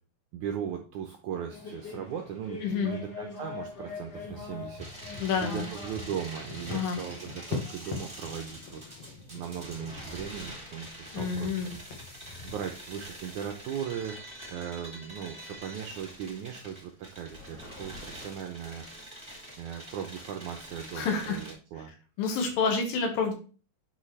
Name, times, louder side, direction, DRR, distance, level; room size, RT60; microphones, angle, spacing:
voice 1, 0.3-8.8 9.2-11.6 12.4-18.9 19.6-21.9, right 8 dB, 85° right, 3 dB, 1.7 m, -38 dB
sound 1, 1.5-7.8, left 3 dB, 40° left, 1.6 m, -44 dB
voice 2, 2.6-3.0 5.2-5.7 6.7-7.0 11.1-11.7 21.0-21.4 22.2-23.3, left 5 dB, 75° left, 3 dB, 3.2 m, -28 dB
sound 2, 4.1-12.5, left 4 dB, 60° left, 1.7 m, -43 dB
sound 3, 4.8-21.5, equal, 15° right, 0.9 m, -45 dB
10.0 x 4.1 x 3.2 m, 0.36 s
omnidirectional pair, 4.3 m